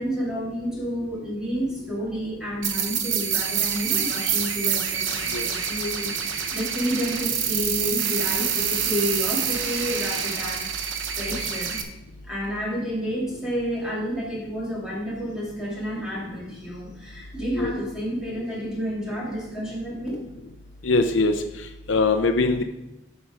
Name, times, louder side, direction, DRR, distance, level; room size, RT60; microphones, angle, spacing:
voice 1, 0.0-11.8 12.2-20.2, equal, 5° right, -6 dB, 2.5 m, -30 dB
sound 1, 2.6-11.8, right 7 dB, 75° right, 0.8 m, -27 dB
voice 2, 20.8-21.3 21.9-22.6, left 3 dB, 75° left, 6 dB, 0.6 m, -21 dB
8.2 x 5.9 x 5.0 m, 0.93 s
head